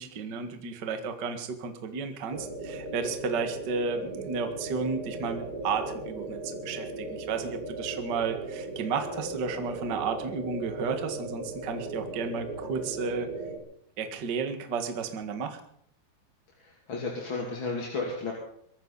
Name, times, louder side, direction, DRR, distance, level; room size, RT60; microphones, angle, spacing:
voice 1, 0.0-13.3 14.0-15.6, right 5 dB, 60° right, 6 dB, 1.1 m, -33 dB
sound 1, 2.3-13.6, right 2 dB, 25° right, 3.5 m, -37 dB
voice 2, 16.6-18.3, left 3 dB, 35° left, -1 dB, 2.8 m, -33 dB
23.5 x 14.5 x 4.1 m, 0.68 s
omnidirectional pair, 5.0 m